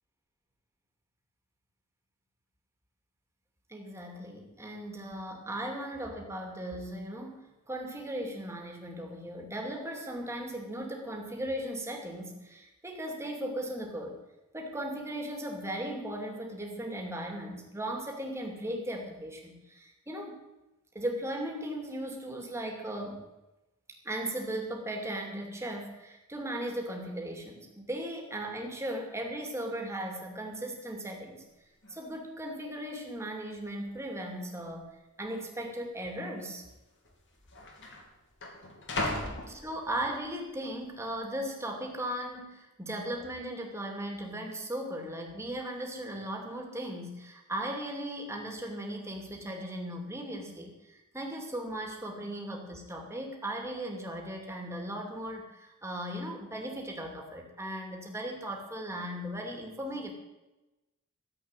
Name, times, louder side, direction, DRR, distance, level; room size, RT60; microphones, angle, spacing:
voice 1, 3.7-14.2 14.5-20.4 20.9-23.3 24.0-31.4 31.9-34.9 35.2-36.6 39.5-60.1, right 1 dB, 10° right, 2 dB, 2.6 m, -37 dB
sound 1, 31.5-31.6 31.8-32.2 33.0-33.1 33.8-34.3 34.6-34.7 35.6-35.7 36.7-36.8 37.1-40.3 40.8-41.2, left 2 dB, 55° left, 2.8 m, -38 dB
14.0 x 8.0 x 9.0 m, 1.0 s
head